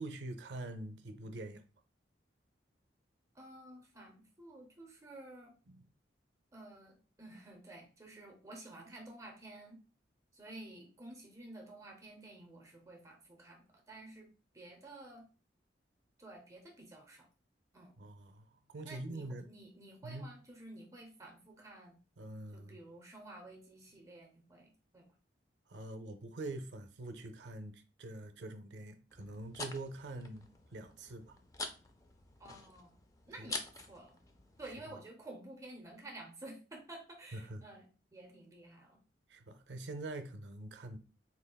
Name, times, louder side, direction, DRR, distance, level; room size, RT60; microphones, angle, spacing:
voice 1, 0.0-1.6 5.7-5.8 18.0-19.5 20.0-20.3 22.2-22.8 25.7-31.4 33.4-33.5 37.3-37.6 39.3-41.0, right 2 dB, 75° right, 0.5 m, -45 dB
voice 2, 3.3-5.6 6.5-9.8 10.3-14.3 14.5-15.3 16.2-17.3 17.7-18.0 18.8-22.0 22.5-25.1 32.4-32.9 33.3-34.2 34.6-39.0, right 2 dB, 20° right, 0.7 m, -52 dB
sound 1, 29.1-34.9, left 3 dB, 20° left, 0.4 m, -47 dB
4.0 x 3.4 x 2.2 m
head